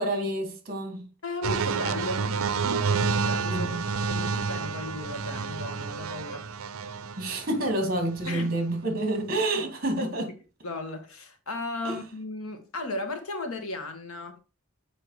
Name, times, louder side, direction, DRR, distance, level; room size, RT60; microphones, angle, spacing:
voice 1, 0.0-1.1 3.5-3.8 7.2-10.3 11.8-12.0, right 1 dB, 40° right, 2.1 m, -28 dB
voice 2, 1.2-3.7 4.1-6.5 8.2-8.5 10.6-14.4, left 2 dB, 85° left, 1.5 m, -35 dB
sound 1, 1.4-7.5 8.2-8.4, right 5 dB, 80° right, 0.5 m, -29 dB
sound 2, 1.5-8.4, left 1 dB, 5° left, 0.9 m, -46 dB
6.8 x 5.0 x 4.7 m
head